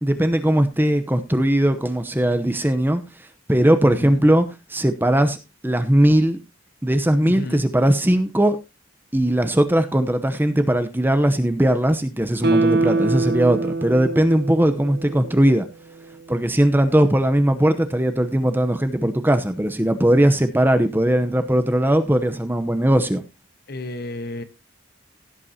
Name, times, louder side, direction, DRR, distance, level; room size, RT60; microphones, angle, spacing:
voice 1, 0.0-3.0 3.5-5.4 5.6-6.4 6.8-8.6 9.1-15.7 16.3-23.2, right 1 dB, 10° right, 0.8 m, -19 dB
voice 2, 3.9-4.2 7.3-7.6 23.7-24.4, left 2 dB, 50° left, 1.1 m, -31 dB
Guitar, 12.4-15.7 16.0-16.1, right 3 dB, 55° right, 0.7 m, -24 dB
16.0 x 8.3 x 2.8 m
head